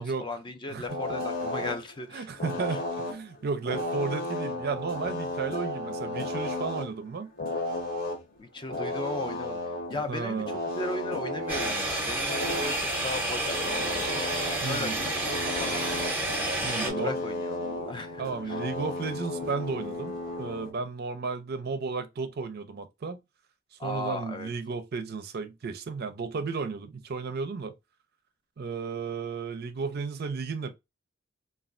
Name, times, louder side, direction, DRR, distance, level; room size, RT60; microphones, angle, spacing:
voice 1, 0.0-2.3 8.4-9.6 9.9-10.4 10.8-12.7 13.0-14.1 14.6-15.3 15.6-15.9 16.8-17.6 17.9-18.6 23.8-24.5, left 2 dB, 25° left, 0.4 m, -36 dB
voice 2, 0.7-1.0 2.1-7.3 10.1-10.5 14.6-15.0 16.6-17.2 18.2-23.2 23.8-27.7 28.6-30.7, right 4 dB, 50° right, 0.4 m, -33 dB
sound 1, 0.9-1.9 2.2-6.9 7.2-8.2 8.6-11.8 12.3-12.8 13.3-20.7, left 2 dB, 45° left, 0.9 m, -34 dB
sound 2, 11.5-16.9, right 2 dB, 10° right, 0.7 m, -30 dB
3.3 x 2.3 x 2.4 m
head